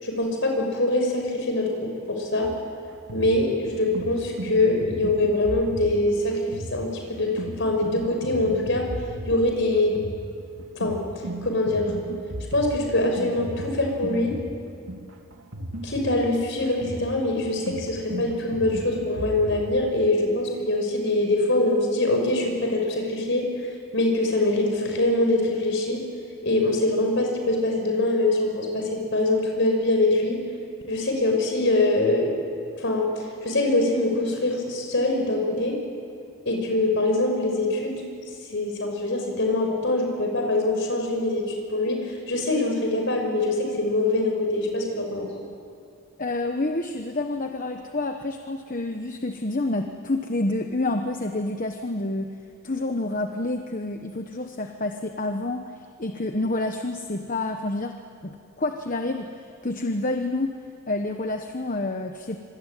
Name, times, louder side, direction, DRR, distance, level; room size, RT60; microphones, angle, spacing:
voice 1, 0.0-2.5 3.1-8.9 9.3-10.0 10.7-11.0 11.4-11.9 12.5-14.4 15.8-23.5 23.9-26.0 26.4-30.4 30.9-32.3 32.8-35.8 36.5-38.0 38.5-45.3, left 2 dB, 55° left, 2 dB, 5.9 m, -24 dB
sound 1, 2.4-19.7, right 1 dB, 75° right, 2.8 m, -36 dB
voice 2, 46.2-52.3 52.6-58.0 58.2-60.6 60.9-62.4, left 2 dB, 40° left, 5 dB, 1.1 m, -28 dB
26.0 x 24.0 x 9.3 m, 2.3 s
head